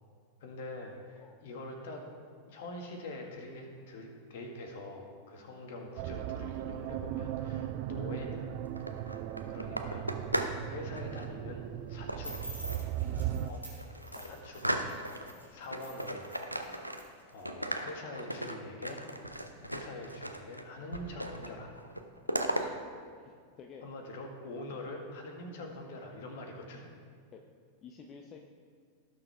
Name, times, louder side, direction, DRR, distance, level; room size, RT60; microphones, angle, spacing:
voice 1, 0.4-2.0 2.4-9.1 9.5-10.1 10.7-12.4 13.4-13.6 14.2-15.2 15.5-16.3 17.3-19.0 19.7-21.7 22.5-22.8 23.8-26.9, left 2 dB, 55° left, 3 dB, 1.7 m, -44 dB
sound 1, 6.0-13.5, right 11 dB, 45° right, 0.5 m, -37 dB
sound 2, 8.6-10.6 10.9-11.3 12.1-12.9 13.4-13.5 13.8-15.3 15.7-17.2 17.5-20.6 20.9-21.5 21.8-22.6, right 1 dB, 90° right, 0.7 m, -36 dB
sound 3, 12.2-17.4, equal, 85° left, 2.6 m, -48 dB
voice 2, 14.0-14.4 14.8-15.0 15.3-15.5 16.7-16.9 19.5-19.7 23.2-23.8 24.7-24.9 25.4-25.6 27.3-27.4 27.8-28.4, left 6 dB, 30° left, 3 dB, 0.8 m, -54 dB
17.5 x 6.8 x 3.5 m, 2.1 s
figure-of-eight pair, 90°, 0 cm